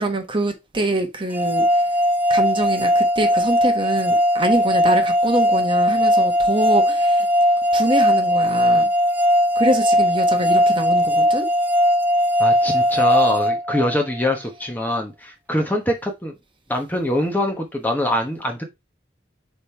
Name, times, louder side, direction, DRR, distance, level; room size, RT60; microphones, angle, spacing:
voice 1, 0.0-1.9 2.3-7.3 7.7-8.9 9.5-11.5, right 1 dB, 30° right, 1.1 m, -24 dB
sound 1, 1.3-14.3, equal, 10° right, 0.4 m, -18 dB
voice 2, 12.4-16.3 16.7-18.6, left 1 dB, 10° left, 1.1 m, -23 dB
5.2 x 4.2 x 4.5 m
head